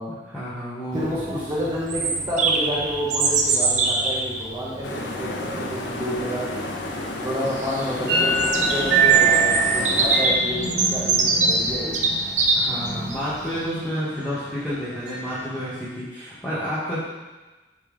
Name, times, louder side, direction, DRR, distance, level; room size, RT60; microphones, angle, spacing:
voice 1, 0.2-1.4 12.6-17.0, equal, 10° left, -12 dB, 1.4 m, -30 dB
voice 2, 0.9-6.7 7.2-12.1, equal, 25° right, -6 dB, 1.2 m, -29 dB
Bird vocalization bird call bird song, 0.9-13.7, right 3 dB, 45° right, 0.6 m, -25 dB
sound 1, 4.8-10.2, left 2 dB, 90° left, 0.7 m, -32 dB
sound 2, 8.1-15.8, right 5 dB, 85° right, 2.1 m, -25 dB
8.7 x 3.4 x 3.5 m, 1.2 s
head